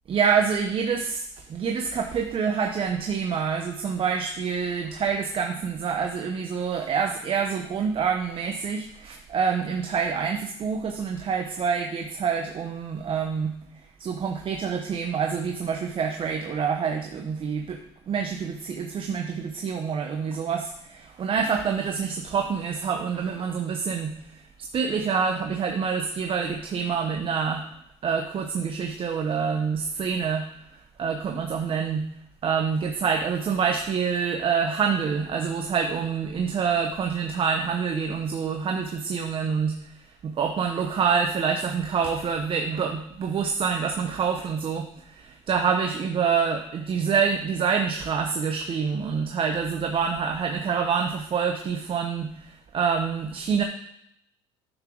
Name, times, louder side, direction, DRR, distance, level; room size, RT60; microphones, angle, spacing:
voice 1, 0.1-1.2 1.5-13.5 14.0-17.8 18.1-24.5 24.7-27.7 28.0-30.5 31.0-32.0 32.4-53.6, right 6 dB, 40° right, 4 dB, 0.9 m, -26 dB
9.7 x 6.1 x 4.6 m, 0.75 s
supercardioid pair, 75°, 13 cm